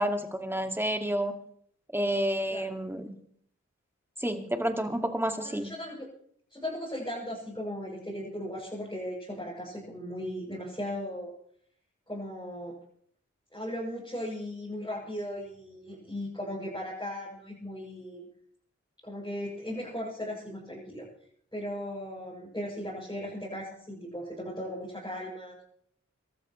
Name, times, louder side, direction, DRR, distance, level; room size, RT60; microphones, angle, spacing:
voice 1, 0.0-1.3 1.9-3.1 4.2-5.7, equal, 10° right, 5 dB, 2.0 m, -29 dB
voice 2, 5.4-6.1 6.5-11.3 12.1-12.8 13.5-18.3 19.0-21.1 21.5-25.6, equal, 15° left, -7 dB, 6.7 m, -37 dB
25.5 x 13.0 x 3.1 m, 0.64 s
wide cardioid pair, 45°, 29 cm